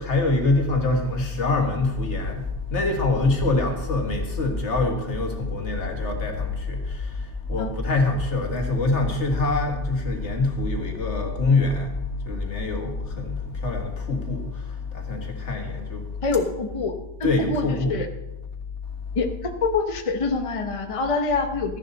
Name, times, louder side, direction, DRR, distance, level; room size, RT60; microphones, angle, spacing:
voice 1, 0.0-2.4 2.7-6.8 7.5-11.9 12.3-14.4 14.9-16.0 17.2-17.9, left 3 dB, 85° left, 2.0 m, -24 dB
sound 1, 1.8-13.8, left 1 dB, 50° left, 1.9 m, -35 dB
voice 2, 16.2-16.9 17.2-18.1 19.2-21.8, left 4 dB, 30° left, 0.9 m, -25 dB
14.0 x 11.0 x 4.1 m
omnidirectional pair, 1.2 m